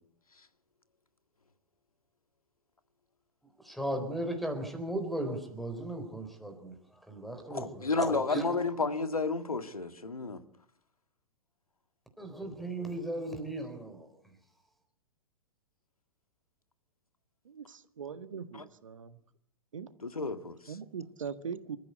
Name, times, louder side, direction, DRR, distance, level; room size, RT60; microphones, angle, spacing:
voice 1, 3.6-8.6 8.8-8.9 12.2-14.1, right 1 dB, ahead, 4.0 m, -36 dB
voice 2, 7.5-10.4 18.5-18.6 20.0-20.7, left 3 dB, 75° left, 1.8 m, -32 dB
voice 3, 17.4-19.2 19.7-19.9 20.7-21.8, right 6 dB, 60° right, 1.7 m, -41 dB
28.0 x 14.5 x 8.3 m
figure-of-eight pair, 110°, 18 cm